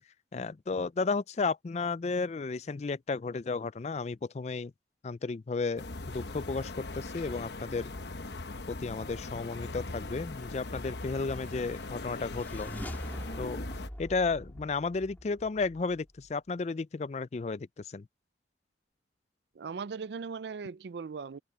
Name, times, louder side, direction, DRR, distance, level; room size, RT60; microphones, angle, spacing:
voice 1, 0.3-4.7 5.0-7.9 8.7-12.7 13.4-13.6 14.0-18.1, left 4 dB, 35° left, 0.4 m, -33 dB
sound 1, 5.8-13.9, left 2 dB, 65° left, 1.0 m, -40 dB
sound 2, 10.7-16.3, equal, 10° left, 2.3 m, -44 dB
voice 2, 19.6-21.4, right 5 dB, 65° right, 0.4 m, -38 dB
head